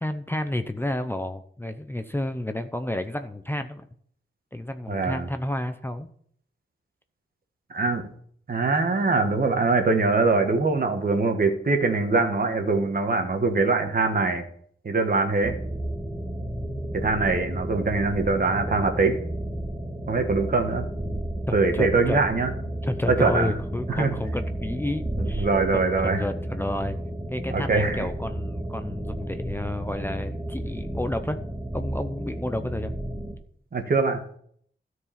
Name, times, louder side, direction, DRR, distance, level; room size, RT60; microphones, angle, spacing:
voice 1, 0.0-3.9 4.5-6.1 21.5-22.2 22.8-25.5 26.0-27.0 27.3-31.4 31.7-32.9, left 1 dB, 10° left, 8 dB, 0.6 m, -30 dB
voice 2, 4.9-5.3 7.7-8.1 8.5-14.5 14.8-15.6 16.9-19.2 20.1-20.8 21.5-22.5 23.1-23.5 24.0-24.1 25.2-26.2 27.5-28.1 33.7-34.2, right 3 dB, 45° right, 5 dB, 1.5 m, -23 dB
sound 1, 15.4-33.4, right 1 dB, 20° right, 1.8 m, -32 dB
13.0 x 4.8 x 5.7 m, 0.62 s
wide cardioid pair, 95°, 20 cm